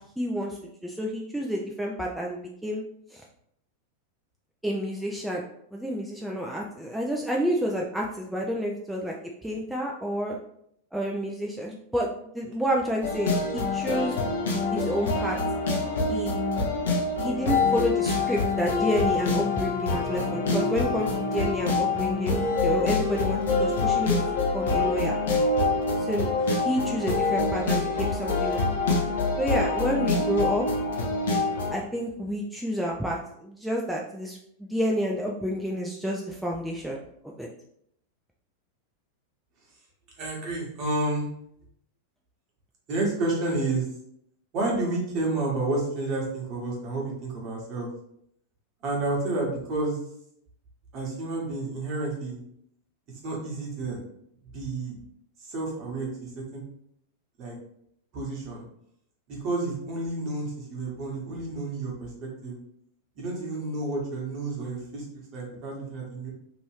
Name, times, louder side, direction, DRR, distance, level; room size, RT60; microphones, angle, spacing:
voice 1, 0.2-2.8 3.1-3.2 4.6-5.4 5.7-9.1 9.4-10.4 10.9-14.1 14.7-15.4 16.0-16.3 17.2-25.1 26.0-28.7 29.4-30.7 31.7-37.5, equal, 5° right, -2 dB, 0.3 m, -29 dB
sound 1, 13.0-31.8, left 3 dB, 60° left, 0.7 m, -26 dB
voice 2, 40.2-41.3 42.9-43.9 44.5-47.9 48.8-50.0 50.9-52.4 53.2-54.0 54.5-54.9 55.4-56.6 57.4-57.6 58.1-58.6 59.3-62.6 63.2-66.3, right 2 dB, 40° right, -2 dB, 1.1 m, -30 dB
2.9 x 2.6 x 3.1 m, 0.73 s
figure-of-eight pair, 90°, 0 cm